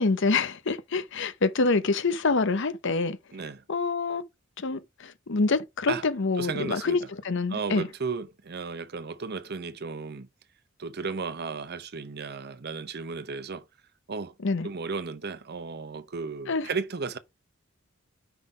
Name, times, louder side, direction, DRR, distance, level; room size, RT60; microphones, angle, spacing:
voice 1, 0.0-3.2 3.7-4.2 4.6-7.9 14.4-14.7 16.5-16.7, left 3 dB, 65° left, 0.8 m, -26 dB
voice 2, 3.3-3.6 5.9-6.0 6.4-7.1 7.5-10.3 10.8-13.7 14.1-14.3 14.6-17.2, right 4 dB, 50° right, 0.8 m, -34 dB
5.7 x 3.9 x 5.0 m
head